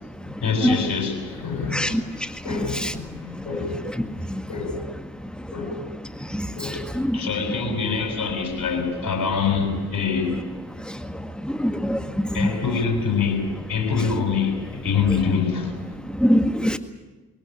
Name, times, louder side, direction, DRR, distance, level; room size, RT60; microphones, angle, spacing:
voice 1, 0.4-3.9 4.5-4.8 5.5-5.8 6.6-6.9 7.1-10.4 12.3-15.8, left 5 dB, 45° left, 6.9 m, -25 dB
voice 2, 11.5-12.5 16.2-16.8, equal, ahead, 1.9 m, -21 dB
23.0 x 17.5 x 9.3 m
figure-of-eight pair, 45°, 48 cm